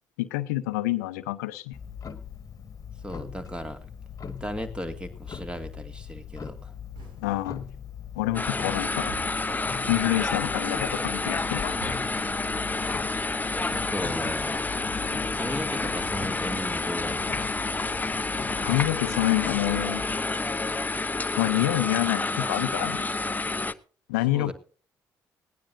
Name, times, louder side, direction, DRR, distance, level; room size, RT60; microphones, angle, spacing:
voice 1, 0.2-1.8 7.2-7.6 8.1-9.1 9.9-11.8 18.6-20.1 20.7-20.8 21.4-23.1 24.1-24.5, left 17 dB, 70° left, 14 dB, 0.7 m, -27 dB
Clock, 1.7-20.1, left 7 dB, 40° left, 1.6 m, -41 dB
voice 2, 3.0-3.9 4.2-6.7 13.7-14.7 15.3-18.0 24.3-24.5, equal, 10° right, 9 dB, 2.3 m, -36 dB
sound 1, 6.9-7.5 9.1-9.7 11.8-12.4 14.2-14.8 16.0-16.5 18.6-19.7 20.1-20.5, right 3 dB, 60° right, 5.4 m, -47 dB
sound 2, 8.3-23.7, left 3 dB, 20° left, 0.9 m, -29 dB
20.0 x 16.0 x 2.6 m, 0.41 s
figure-of-eight pair, 45°, 9 cm